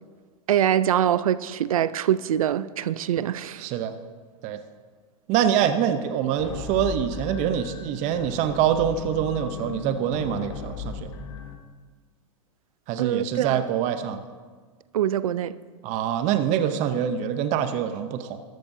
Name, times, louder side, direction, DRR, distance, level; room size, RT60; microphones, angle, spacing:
voice 1, 0.5-3.7 13.0-13.6 14.9-15.5, right 10 dB, 85° right, 0.5 m, -24 dB
voice 2, 3.6-3.9 4.4-4.6 5.3-11.1 12.9-14.2 15.8-18.4, right 9 dB, 45° right, 0.7 m, -25 dB
sound 1, 6.4-11.6, left 6 dB, 65° left, 1.2 m, -36 dB
13.5 x 12.0 x 2.7 m
hypercardioid pair, 115°, 17 cm